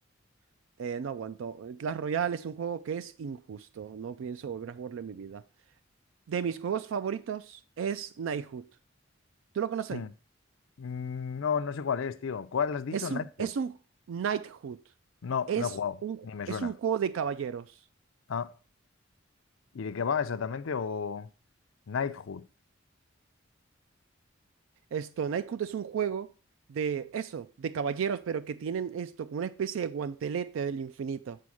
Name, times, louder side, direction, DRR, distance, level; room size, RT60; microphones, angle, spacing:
voice 1, 0.8-5.4 6.3-8.6 9.5-10.1 12.9-13.8 14.1-14.8 15.5-15.8 16.0-16.2 16.5-17.7 24.9-26.3 26.7-31.4, right 7 dB, 75° right, 0.3 m, -33 dB
voice 2, 10.8-13.5 15.2-16.0 16.2-16.7 18.3-18.5 19.7-21.3 21.9-22.4, left 6 dB, 80° left, 0.5 m, -32 dB
8.5 x 4.3 x 6.2 m
head